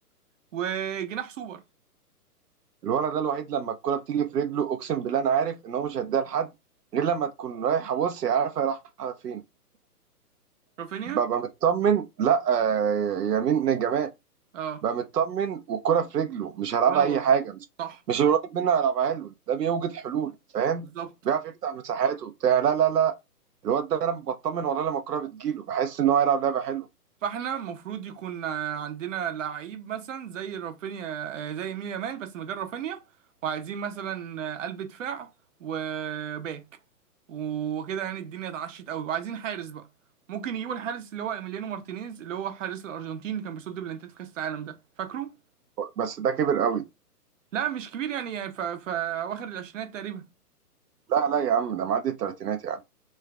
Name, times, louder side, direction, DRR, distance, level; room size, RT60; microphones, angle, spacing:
voice 1, 0.5-1.6 10.8-11.2 14.5-14.8 16.9-17.2 17.8-18.3 20.8-21.1 27.2-33.0 33.4-35.3 35.6-36.6 37.3-39.9 40.3-45.3 47.5-50.3, right 9 dB, 55° right, 0.8 m, -33 dB
voice 2, 2.8-6.5 6.9-9.4 11.1-14.1 14.8-17.6 18.1-20.8 21.3-23.1 23.6-26.9 45.8-46.8 51.1-52.8, right 8 dB, 85° right, 0.6 m, -25 dB
3.1 x 2.3 x 3.2 m
hypercardioid pair, 135°, 47 cm